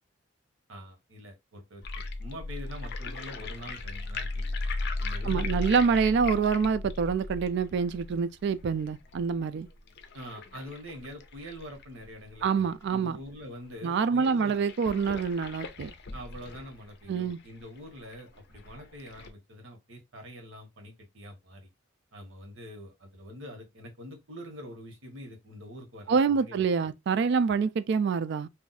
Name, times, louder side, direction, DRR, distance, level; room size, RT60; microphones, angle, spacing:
voice 1, 0.7-4.6 5.0-5.6 10.1-14.6 16.1-21.7 22.1-26.6, equal, 85° right, 1.2 m, -45 dB
sound 1, 1.8-12.8 13.3-13.4 13.5-13.6 14.2-19.3, left 3 dB, 55° left, 0.5 m, -37 dB
voice 2, 5.2-9.7 12.4-13.2 13.8-15.9 17.1-17.4 26.1-28.5, right 5 dB, 60° right, 0.3 m, -26 dB
2.6 x 2.3 x 4.0 m
head